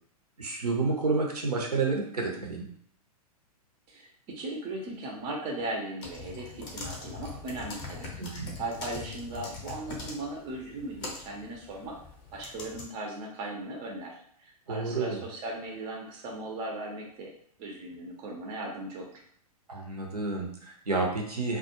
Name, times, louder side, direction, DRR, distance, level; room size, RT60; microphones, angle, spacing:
voice 1, 0.4-2.6 8.2-8.6 14.7-15.2 19.7-21.6, right 3 dB, 75° right, 0 dB, 0.7 m, -30 dB
voice 2, 3.9-8.1 8.6-12.0 12.3-14.2 14.4-17.3 17.6-19.1, right 2 dB, 25° right, 0 dB, 0.5 m, -37 dB
sound 1, 6.0-12.9, left 4 dB, 25° left, 0.5 m, -42 dB
2.2 x 2.0 x 2.9 m, 0.64 s
figure-of-eight pair, 105°, 20 cm